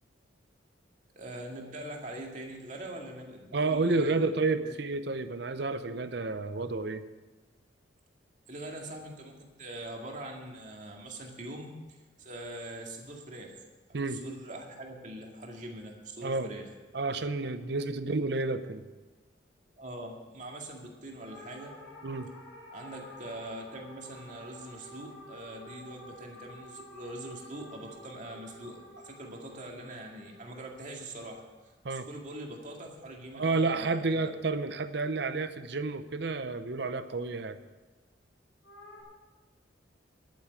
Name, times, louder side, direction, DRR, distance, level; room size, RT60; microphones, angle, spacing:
voice 1, 1.2-4.3 4.6-4.7 8.5-13.6 13.9-16.7 19.8-21.8 22.7-31.4 31.9-34.3, right 1 dB, 40° right, 1 dB, 2.1 m, -43 dB
voice 2, 3.5-7.0 13.9-14.2 16.2-16.5 16.9-18.9 22.0-22.3 31.8-32.1 33.3-37.6, right 3 dB, 60° right, 11 dB, 0.8 m, -30 dB
sound 1, 21.2-31.7 38.6-39.0, equal, 85° left, 4.5 m, -51 dB
10.5 x 9.2 x 8.3 m, 1.2 s
head